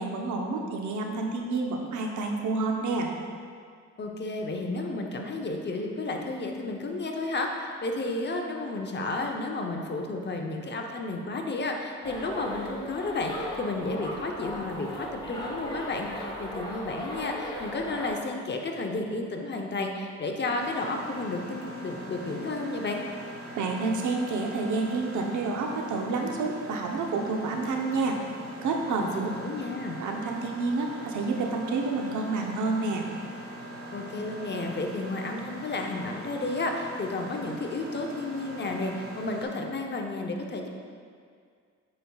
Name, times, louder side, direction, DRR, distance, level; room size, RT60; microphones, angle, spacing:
voice 1, 0.0-3.1 23.6-28.2 28.6-29.3 30.0-33.1, right 3 dB, 75° right, 1 dB, 0.9 m, -29 dB
voice 2, 4.0-23.0 29.0-30.0 33.9-40.7, left 2 dB, 35° left, 2 dB, 0.8 m, -32 dB
sound 1, 12.0-18.1, equal, 15° left, 1.3 m, -37 dB
Mechanisms, 20.6-39.4, right 1 dB, 50° right, 1.4 m, -42 dB
8.7 x 5.2 x 2.3 m, 2.1 s
cardioid pair, 90°, 30 cm